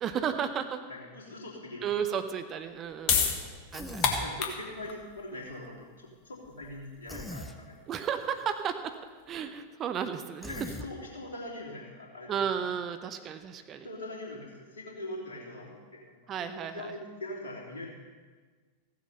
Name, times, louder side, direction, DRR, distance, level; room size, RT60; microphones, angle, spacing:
voice 1, 0.0-0.8 1.8-3.4 3.7-4.3 7.9-10.5 12.3-13.9 16.3-16.9, right 8 dB, 30° right, 9 dB, 0.8 m, -33 dB
voice 2, 0.9-2.2 3.1-3.5 4.2-7.8 10.5-12.3 13.8-16.2 16.5-17.9, left 1 dB, 65° left, -3 dB, 3.1 m, -42 dB
sound 1, 2.6-9.4, left 6 dB, 40° left, 1.5 m, -33 dB
Human voice, 3.7-4.3 7.1-7.6 10.4-10.9, left 2 dB, 5° left, 0.8 m, -40 dB
15.5 x 7.8 x 5.5 m, 1.4 s
figure-of-eight pair, 90°, 0 cm